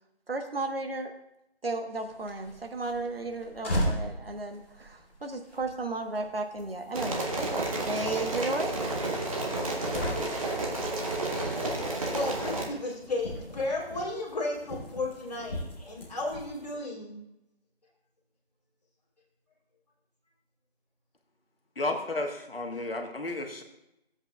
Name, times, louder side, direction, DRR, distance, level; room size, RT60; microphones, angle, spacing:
voice 1, 0.3-1.1 1.6-8.8, right 2 dB, 65° right, 5 dB, 1.2 m, -34 dB
sound 1, 2.0-16.7, equal, 10° left, 1.1 m, -39 dB
sound 2, 6.9-12.7, right 2 dB, 35° right, 1.3 m, -31 dB
voice 2, 11.3-11.7 12.1-17.1, left 2 dB, 40° left, -5 dB, 2.7 m, -34 dB
voice 3, 21.8-23.6, left 2 dB, 65° left, 4 dB, 1.3 m, -32 dB
15.0 x 7.9 x 2.3 m, 0.86 s
figure-of-eight pair, 165°, 31 cm